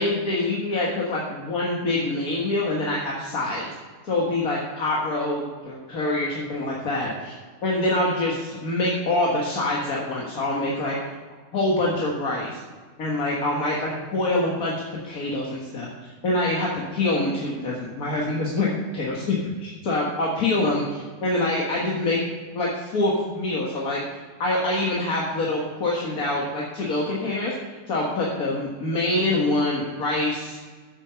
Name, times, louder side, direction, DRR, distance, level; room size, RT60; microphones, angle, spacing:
voice 1, 0.0-3.7 4.0-7.3 7.6-11.1 11.5-12.6 13.0-22.2 22.5-27.5 27.9-30.6, left 2 dB, 85° left, -4 dB, 2.0 m, -25 dB
8.2 x 8.0 x 5.7 m, 1.5 s
omnidirectional pair, 1.5 m